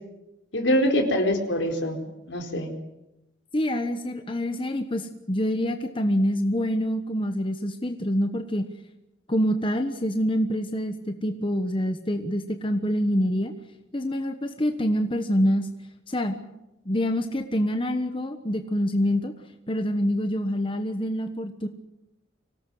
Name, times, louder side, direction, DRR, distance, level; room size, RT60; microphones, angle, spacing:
voice 1, 0.5-2.7, equal, 75° left, 4 dB, 4.4 m, -24 dB
voice 2, 3.5-8.6 9.3-13.5 13.9-15.7 16.1-16.5 16.8-19.3 19.7-21.7, equal, 25° left, 7 dB, 1.2 m, -26 dB
25.0 x 18.5 x 7.9 m, 0.95 s
head